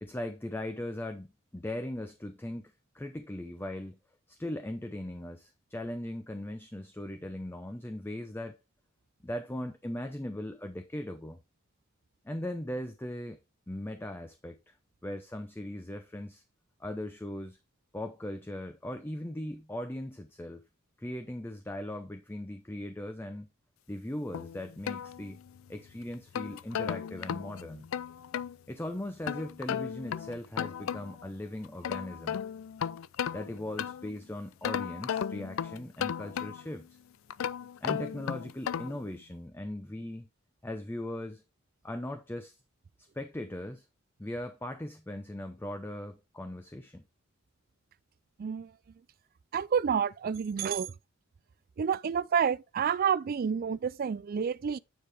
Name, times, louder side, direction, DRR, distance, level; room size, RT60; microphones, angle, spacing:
voice 1, 0.0-1.3 1.5-4.0 4.3-8.6 9.2-11.4 12.2-13.4 13.7-14.8 15.0-16.4 16.8-17.6 17.9-20.6 21.0-23.5 23.9-25.4 25.7-27.9 28.7-32.4 33.3-37.0 37.8-40.3 40.6-41.4 41.8-42.6 43.1-43.9 44.2-47.0, left 1 dB, 10° left, 0.5 m, -39 dB
sound 1, 24.3-25.7 26.1-28.6 29.3-31.3 31.6-34.2 34.6-36.8 37.3-39.1, left 8 dB, 75° left, 0.4 m, -35 dB
voice 2, 48.4-48.7 49.5-50.9 51.8-54.8, right 7 dB, 45° right, 0.3 m, -29 dB
9.3 x 4.9 x 3.4 m
head